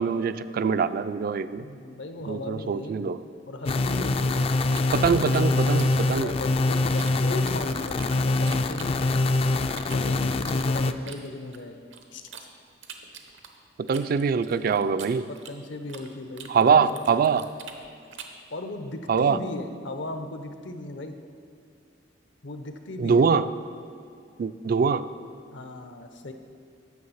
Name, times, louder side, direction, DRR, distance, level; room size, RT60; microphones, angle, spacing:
voice 1, 0.0-1.7 2.3-3.2 4.9-6.3 13.8-15.3 16.5-17.5 19.1-19.4 23.0-23.5 24.4-25.1, right 5 dB, 50° right, 14 dB, 0.3 m, -23 dB
voice 2, 1.6-3.1 3.5-4.5 6.1-9.2 9.9-11.8 12.1-12.2 15.3-16.8 18.5-21.2 22.4-23.2 25.5-26.3, left 2 dB, 75° left, 7 dB, 0.7 m, -37 dB
sound 1, 3.7-10.9, left 2 dB, 30° left, 0.3 m, -24 dB
sound 2, 4.7-7.1 7.4-9.3 9.7-12.5 12.8-16.1 16.4-18.4, right 7 dB, 80° right, 0.9 m, -45 dB
9.6 x 7.0 x 5.6 m, 2.3 s
head